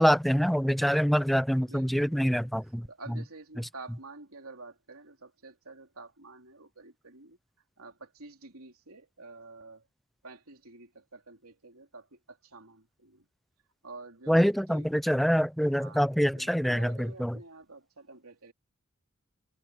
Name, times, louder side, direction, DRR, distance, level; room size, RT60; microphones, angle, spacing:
voice 1, 0.0-2.9 14.3-17.4, equal, ahead, 0.4 m, -25 dB
voice 2, 1.7-7.4 7.8-9.9 10.2-13.3 13.8-14.9 15.6-18.5, right 3 dB, 75° right, 3.5 m, -49 dB
head